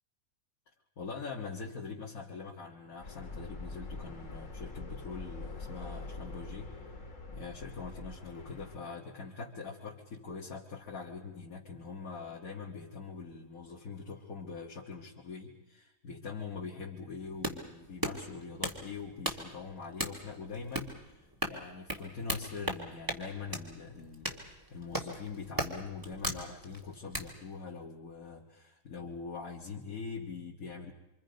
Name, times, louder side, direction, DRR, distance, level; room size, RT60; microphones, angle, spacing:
voice 1, 1.0-6.7 7.3-30.9, left 5 dB, 90° left, -3 dB, 2.2 m, -43 dB
sound 1, 3.0-8.8, left 3 dB, 65° left, 2.3 m, -44 dB
sound 2, 17.2-27.3, right 1 dB, 15° right, 2.0 m, -38 dB
26.5 x 25.5 x 5.3 m, 1.0 s
omnidirectional pair, 1.4 m